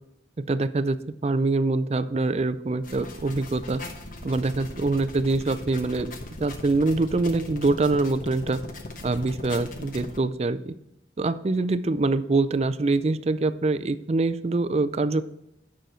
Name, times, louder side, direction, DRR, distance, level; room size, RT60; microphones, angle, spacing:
voice 1, 0.5-1.0 1.2-3.8 4.2-6.1 6.4-8.6 9.0-10.7 11.2-15.2, right 3 dB, 35° right, 13 dB, 0.4 m, -24 dB
sound 1, 2.8-10.2, left 2 dB, 50° left, 1.0 m, -39 dB
9.2 x 6.3 x 4.4 m, 0.86 s
head